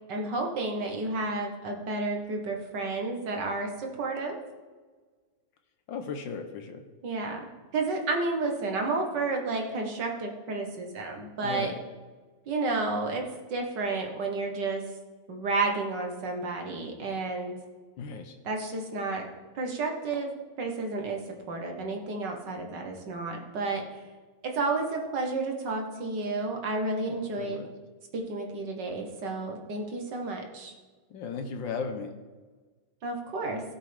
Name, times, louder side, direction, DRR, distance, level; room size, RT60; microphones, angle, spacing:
voice 1, 0.1-4.4 7.0-7.5 7.7-11.7 12.5-14.8 15.3-17.5 18.4-19.3 19.6-21.2 21.5-23.8 24.4-27.6 28.1-30.7 33.0-33.6, right 3 dB, 70° right, 2 dB, 2.1 m, -31 dB
voice 2, 5.9-6.8 11.4-11.8 18.0-18.3 27.0-27.7 31.1-32.1, left 5 dB, 90° left, 6 dB, 1.7 m, -36 dB
17.0 x 7.4 x 3.5 m, 1.4 s
omnidirectional pair, 2.0 m